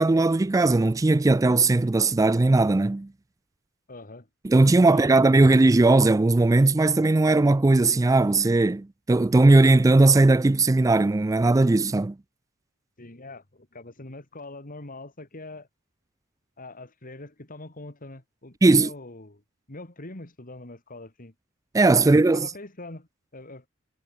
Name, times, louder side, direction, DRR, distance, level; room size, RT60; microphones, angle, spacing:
voice 1, 0.0-3.1 4.4-12.2 18.6-18.9 21.7-22.5, right 2 dB, 15° right, 0.4 m, -18 dB
voice 2, 3.9-4.3 4.8-5.6 13.0-15.7 16.6-19.4 19.7-21.3 22.0-23.7, left 2 dB, 40° left, 2.7 m, -43 dB
head